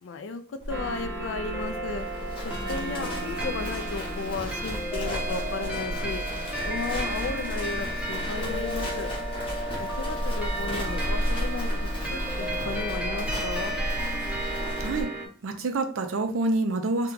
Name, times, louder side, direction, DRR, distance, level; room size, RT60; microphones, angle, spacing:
voice 1, 0.0-2.1 2.4-6.2 6.7-9.1 9.8-11.7 12.1-13.8, left 4 dB, 70° left, 10 dB, 0.4 m, -34 dB
Livestock farm animals working animals, 0.6-15.0, equal, 25° left, 0.8 m, -33 dB
sound 1, 0.7-15.3, right 1 dB, 5° right, 0.5 m, -33 dB
voice 2, 14.8-15.1 15.4-17.1, right 2 dB, 85° right, 6 dB, 0.5 m, -27 dB
2.8 x 2.2 x 3.7 m, 0.42 s
head